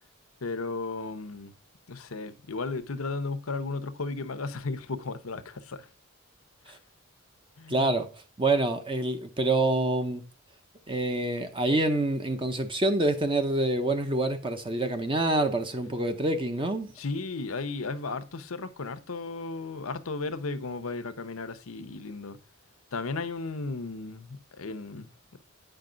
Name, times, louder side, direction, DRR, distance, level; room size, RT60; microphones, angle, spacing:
voice 1, 0.4-1.5 1.9-5.9 6.7-6.8 7.6-7.9 17.0-22.4 22.9-25.4, left 3 dB, 90° left, 0.8 m, -35 dB
voice 2, 7.7-8.1 8.4-10.2 10.9-16.9, right 2 dB, 25° right, 0.7 m, -26 dB
8.9 x 5.3 x 3.8 m
head